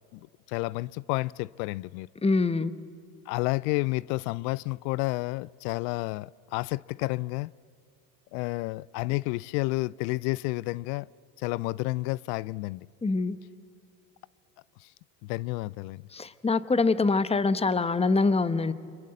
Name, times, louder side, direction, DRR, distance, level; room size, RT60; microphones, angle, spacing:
voice 1, 0.5-2.1 3.3-7.5 8.3-11.1 11.4-12.9 15.2-16.0, left 22 dB, 80° left, 0.6 m, -30 dB
voice 2, 2.2-2.7 13.0-13.4 16.1-18.7, left 3 dB, 10° left, 1.0 m, -24 dB
29.5 x 24.5 x 7.8 m
supercardioid pair, 95°, 50 cm